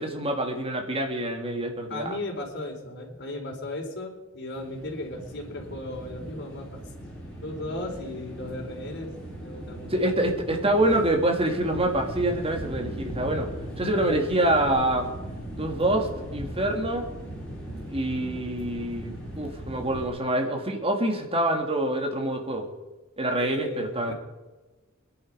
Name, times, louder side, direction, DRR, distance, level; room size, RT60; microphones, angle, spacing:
voice 1, 0.0-2.2 9.9-13.5 13.8-15.1 15.6-17.1 17.9-22.7 23.2-24.1, right 1 dB, 25° right, 3 dB, 2.7 m, -26 dB
voice 2, 1.9-6.8 7.4-9.1 9.4-9.9 23.4-24.1, left 2 dB, 55° left, 1 dB, 4.2 m, -36 dB
sound 1, 4.5-20.1, right 1 dB, 5° left, 7.1 m, -38 dB
26.0 x 11.0 x 4.9 m, 1.2 s
head